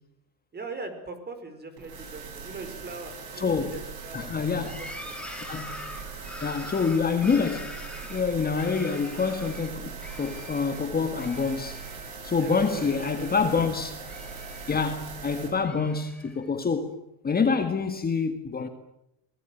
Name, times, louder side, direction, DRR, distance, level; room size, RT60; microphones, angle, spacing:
voice 1, 0.5-4.3 4.6-5.2 12.3-13.5, right 3 dB, 25° right, 4.9 m, -41 dB
sound 1, 1.8-15.5, right 5 dB, 65° right, 7.7 m, -40 dB
voice 2, 3.4-3.8 4.1-4.8 5.5-5.8 6.4-7.8 8.1-11.8 12.2-13.9 14.7-17.0 17.2-18.7, left 5 dB, 20° left, 1.7 m, -26 dB
sound 2, 4.6-9.7 10.0-10.8 11.2-12.1 12.4-13.6 14.0-15.0 15.5-16.5, left 1 dB, ahead, 3.3 m, -44 dB
24.0 x 19.5 x 9.2 m
cardioid pair, 135°, 42 cm